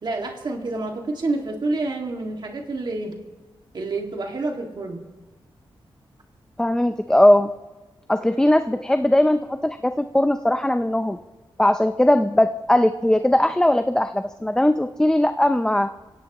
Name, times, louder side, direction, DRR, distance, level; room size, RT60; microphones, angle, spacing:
voice 1, 0.0-3.1 3.7-5.0, right 2 dB, 55° right, 2 dB, 2.2 m, -28 dB
voice 2, 6.6-7.5 8.1-11.2 11.6-15.9, left 1 dB, 10° left, 8 dB, 0.5 m, -19 dB
25.5 x 16.5 x 3.0 m, 1.2 s
wide cardioid pair, 105°, 9 cm